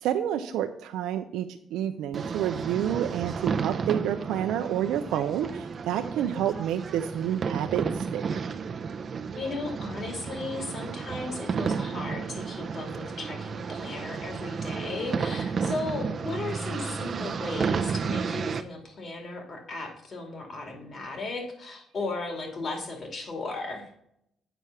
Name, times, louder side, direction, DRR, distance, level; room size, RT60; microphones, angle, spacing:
voice 1, 0.0-8.2, right 10 dB, 90° right, 7 dB, 0.5 m, -29 dB
sound 1, 2.1-18.6, right 5 dB, 45° right, 0.6 m, -32 dB
voice 2, 9.4-23.9, left 3 dB, 50° left, 3 dB, 2.4 m, -36 dB
7.9 x 4.7 x 5.7 m, 0.73 s
cardioid pair, 90°, 0 cm